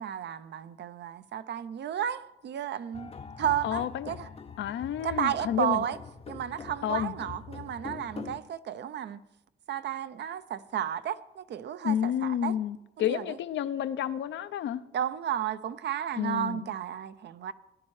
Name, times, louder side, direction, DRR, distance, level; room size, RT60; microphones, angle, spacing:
voice 1, 0.0-3.1 3.4-4.3 5.0-6.0 6.3-9.2 9.7-12.5 13.1-13.2 14.9-17.5, right 10 dB, 60° right, 0.6 m, -33 dB
sound 1, 2.9-8.4, left 5 dB, 30° left, 0.7 m, -43 dB
voice 2, 3.6-4.1 4.6-5.8 6.8-7.1 11.8-14.8 16.2-16.7, left 10 dB, 70° left, 0.6 m, -30 dB
18.5 x 10.5 x 3.2 m
cardioid pair, 90°, 20 cm